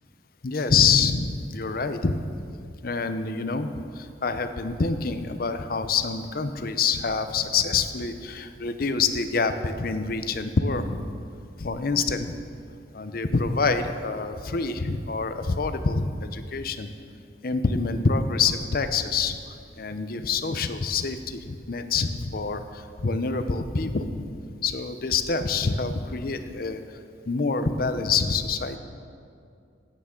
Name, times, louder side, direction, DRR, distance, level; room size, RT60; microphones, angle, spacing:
voice 1, 0.4-2.2 2.8-11.1 11.6-12.3 12.9-16.9 17.4-19.4 19.8-24.3 24.6-26.8 27.3-28.8, left 4 dB, 55° left, 9 dB, 0.6 m, -26 dB
16.0 x 8.5 x 3.8 m, 2.4 s
head